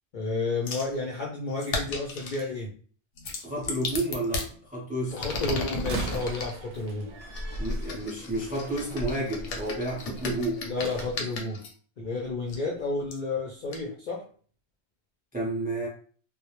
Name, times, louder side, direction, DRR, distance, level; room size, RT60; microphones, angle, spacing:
voice 1, 0.1-2.7 5.1-7.1 10.6-11.6 12.0-14.2, left 3 dB, 60° left, -3 dB, 0.5 m, -31 dB
sound 1, 0.7-0.9 1.6-2.5 3.2-4.5 5.1-6.5 7.3-11.7 12.5-12.6 13.1-13.2 13.7-13.8, left 3 dB, 85° left, 0.9 m, -35 dB
voice 2, 3.4-5.2 7.6-10.7 15.3-15.9, right 1 dB, 10° right, -3 dB, 0.4 m, -31 dB
Slam, 5.7-11.1, right 1 dB, 70° right, 0.8 m, -38 dB
2.2 x 2.0 x 2.9 m, 0.43 s
omnidirectional pair, 1.2 m